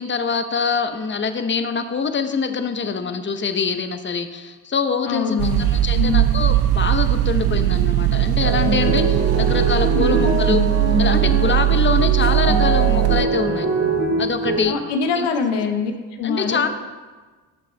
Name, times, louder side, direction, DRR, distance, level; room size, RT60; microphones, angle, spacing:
voice 1, 0.0-5.4 5.7-10.6 11.0-13.7 14.2-14.8 15.1-15.3 16.2-16.7, left 5 dB, 30° left, 8 dB, 0.8 m, -24 dB
voice 2, 5.0-6.4 9.9-10.4 14.6-15.9 16.2-16.7, left 5 dB, 85° left, 5 dB, 1.2 m, -24 dB
sound 1, 5.4-13.3, right 15 dB, 65° right, 0.5 m, -19 dB
sound 2, 8.4-14.6, right 2 dB, 40° right, 2.1 m, -23 dB
12.5 x 6.7 x 3.4 m, 1.3 s
supercardioid pair, 75°, 40 cm